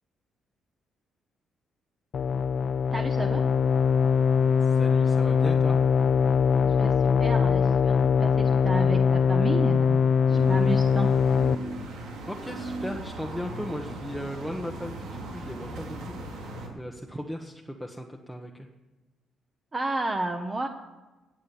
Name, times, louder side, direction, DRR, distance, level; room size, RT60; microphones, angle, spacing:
sound 1, 2.1-11.6, left 6 dB, 55° left, 0.4 m, -22 dB
voice 1, 2.9-3.4 6.6-6.9 7.2-7.9 8.2-11.1 19.7-20.7, right 2 dB, 25° right, 5 dB, 1.1 m, -31 dB
voice 2, 4.6-5.8 12.3-16.5 16.7-18.7, equal, ahead, 1 dB, 1.2 m, -37 dB
sound 2, 10.3-16.7, right 1 dB, 85° right, 3.1 m, -38 dB
17.5 x 7.2 x 7.1 m, 1.2 s
cardioid pair, 90°, 0 cm